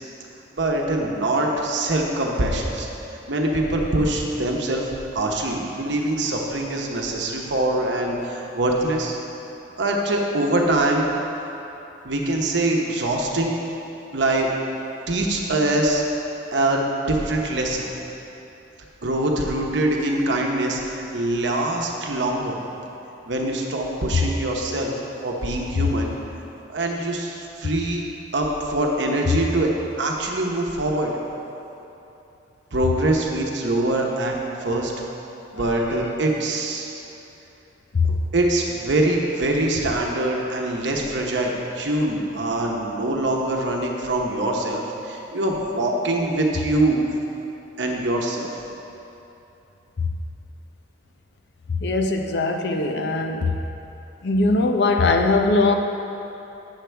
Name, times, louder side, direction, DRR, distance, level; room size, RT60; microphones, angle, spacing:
voice 1, 0.5-2.9 3.3-9.2 9.8-11.1 12.0-13.5 14.1-14.7 15.1-16.0 16.5-17.9 19.0-22.6 23.2-24.9 25.2-26.1 26.7-28.0 28.3-31.1 32.7-34.9 35.5-36.9 38.0-47.0 47.8-48.5, right 1 dB, 65° right, 0 dB, 0.9 m, -23 dB
voice 2, 51.8-53.5 54.2-55.7, left 3 dB, 60° left, 4 dB, 0.5 m, -20 dB
8.0 x 7.7 x 3.4 m, 2.9 s
head